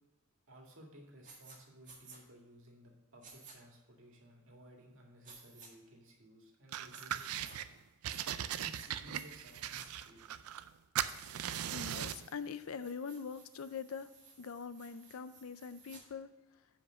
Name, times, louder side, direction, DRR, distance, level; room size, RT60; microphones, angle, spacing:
voice 1, 0.5-7.8 8.5-10.4, equal, 65° right, 0 dB, 1.9 m, -57 dB
sound 1, 1.2-1.6 1.8-2.2 3.2-3.5 5.2-5.7 6.9-7.6 8.1-8.9 9.1-9.9 11.0-11.6 12.0-16.0, right 4 dB, 40° right, 1.9 m, -57 dB
sound 2, 6.7-7.7 8.0-10.7 10.9-12.3, right 10 dB, 90° right, 0.4 m, -39 dB
voice 2, 11.7-14.1 14.4-16.3, left 6 dB, 70° left, 13 dB, 0.5 m, -43 dB
7.4 x 5.3 x 5.9 m, 1.1 s
head